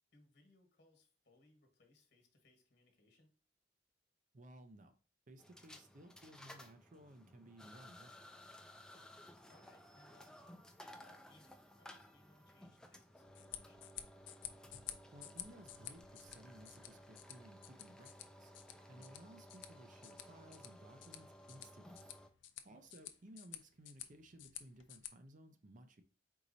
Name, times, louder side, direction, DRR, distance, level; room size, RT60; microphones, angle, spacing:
voice 1, 0.1-3.3 8.9-9.1 9.5-10.4 10.9-13.9 18.9-19.1 22.7-22.9, left 2 dB, 60° left, 3 dB, 1.3 m, -69 dB
voice 2, 4.3-5.0 5.3-8.3 15.1-18.1 18.4-18.5 18.9-22.1 22.6-26.0, right 1 dB, 45° right, 7 dB, 0.6 m, -58 dB
sound 1, 5.4-22.3, left 1 dB, 5° left, 0.4 m, -58 dB
sound 2, 13.2-25.1, left 12 dB, 80° left, 0.5 m, -53 dB
4.7 x 3.9 x 2.6 m, 0.38 s
head